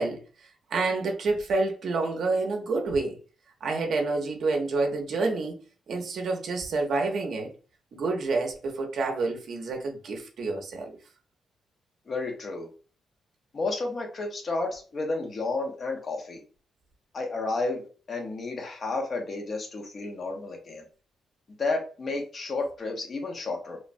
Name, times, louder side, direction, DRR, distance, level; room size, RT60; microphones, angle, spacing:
voice 1, 0.0-3.2 3.6-5.6 5.9-7.5 7.9-11.0, right 3 dB, 55° right, 0.6 m, -28 dB
voice 2, 12.1-12.7 13.5-16.4 17.1-20.8 21.6-23.8, left 3 dB, 35° left, 0.7 m, -31 dB
3.1 x 2.1 x 2.5 m
cardioid pair, 155°, 0 cm